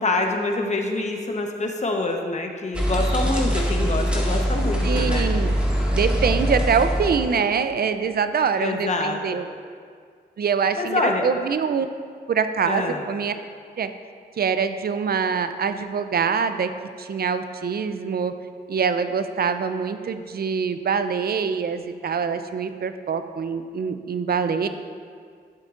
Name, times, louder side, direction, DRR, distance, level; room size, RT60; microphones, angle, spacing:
voice 1, 0.0-5.3 8.6-9.5 10.8-11.3 12.7-13.0, left 2 dB, 40° left, 2 dB, 1.0 m, -26 dB
sound 1, 2.7-7.4, equal, 5° right, 1.8 m, -23 dB
voice 2, 4.8-5.6 5.9-9.5 10.4-11.9 12.3-13.3 13.8-13.9 14.4-16.7 17.0-18.3 18.7-24.7, right 6 dB, 60° right, 10 dB, 0.5 m, -24 dB
11.5 x 7.6 x 2.5 m, 2.1 s
cardioid pair, 60°, 18 cm